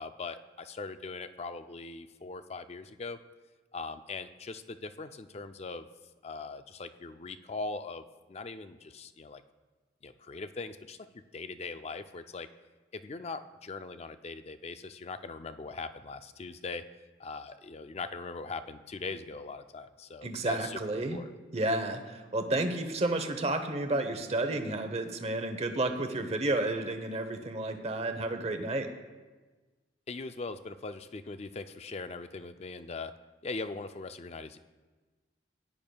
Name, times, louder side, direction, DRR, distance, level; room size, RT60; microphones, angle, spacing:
voice 1, 0.0-3.2 3.7-5.9 6.2-9.4 10.0-12.5 12.9-16.9 17.2-20.8 21.1-21.3 30.1-33.1 33.4-34.6, left 3 dB, 35° left, 10 dB, 0.4 m, -40 dB
voice 2, 20.2-21.2 21.5-28.9, right 2 dB, 35° right, 7 dB, 0.8 m, -31 dB
17.5 x 10.5 x 2.3 m, 1.3 s
head